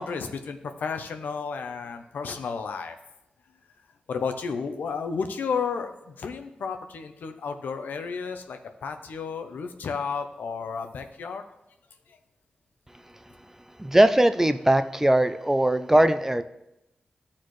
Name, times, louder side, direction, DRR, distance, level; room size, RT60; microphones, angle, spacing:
voice 1, 0.0-3.0 4.1-11.4 12.1-12.2, left 5 dB, 85° left, 7 dB, 0.6 m, -32 dB
voice 2, 13.8-16.4, right 1 dB, 15° right, 10 dB, 0.5 m, -20 dB
12.5 x 4.3 x 3.1 m, 0.88 s
cardioid pair, 55°, 3 cm